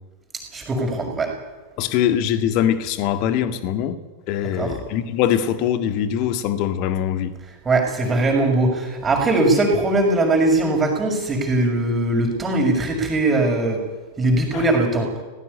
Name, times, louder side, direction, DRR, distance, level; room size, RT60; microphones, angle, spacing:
voice 1, 0.5-1.3 4.5-4.8 7.6-13.8 14.2-15.1, right 2 dB, 15° right, 3 dB, 6.1 m, -20 dB
voice 2, 1.8-4.0 4.3-7.3 14.5-14.6, left 10 dB, 45° left, 9 dB, 2.0 m, -22 dB
18.0 x 17.5 x 9.8 m, 1.2 s
figure-of-eight pair, 90°, 0 cm